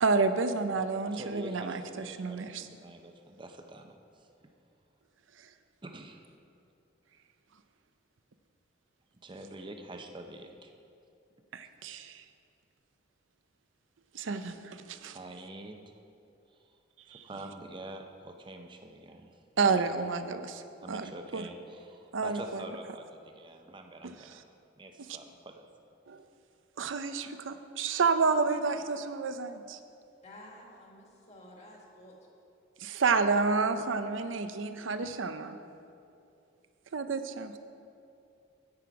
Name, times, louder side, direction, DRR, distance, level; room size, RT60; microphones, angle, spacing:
voice 1, 0.0-2.7 11.5-12.2 14.1-15.2 17.1-17.2 19.6-20.6 20.9-21.4 22.1-22.6 24.0-24.4 25.0-25.2 26.1-26.2 26.8-29.8 32.8-35.6 36.9-37.6, right 4 dB, 80° right, 10 dB, 0.6 m, -30 dB
voice 2, 1.1-4.0 4.4-4.5 5.8-6.3 9.2-10.7 15.0-15.8 17.1-19.3 19.6-20.0 20.8-24.4 24.8-25.6, right 1 dB, 25° right, 5 dB, 0.6 m, -46 dB
voice 3, 30.2-32.2, left 1 dB, 35° left, -1 dB, 1.6 m, -51 dB
9.7 x 8.6 x 4.7 m, 2.6 s
head